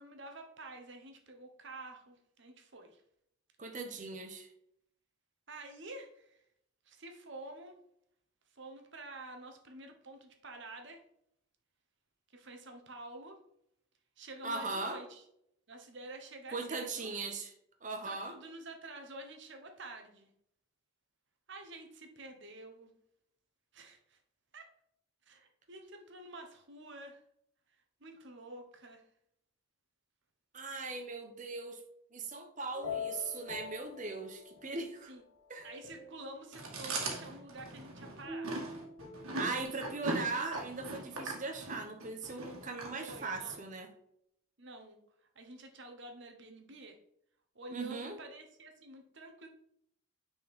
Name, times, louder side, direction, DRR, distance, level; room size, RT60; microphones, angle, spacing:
voice 1, 0.0-3.0 5.5-6.4 6.8-7.8 8.5-11.0 12.3-13.4 14.2-15.2 15.7-17.1 18.0-20.3 21.5-23.0 23.7-24.2 24.5-24.6 25.3-27.2 28.0-29.0 35.1-35.2 35.6-38.5 43.1-43.6 44.6-45.0 45.3-47.0 47.5-49.5, right 2 dB, 55° right, 5 dB, 1.1 m, -49 dB
voice 2, 3.6-4.5 14.4-15.0 16.5-17.5 17.8-18.3 30.5-31.8 32.1-35.1 35.5-35.7 39.3-43.9 47.7-48.2, right 3 dB, 35° right, 5 dB, 0.9 m, -39 dB
sound 1, 32.7-34.9 35.4-36.5 38.2-39.6, left 4 dB, 60° left, 1.7 m, -44 dB
Chewing mastication, 36.5-43.6, right 2 dB, 80° right, 1.8 m, -40 dB
6.1 x 4.6 x 3.7 m, 0.73 s
head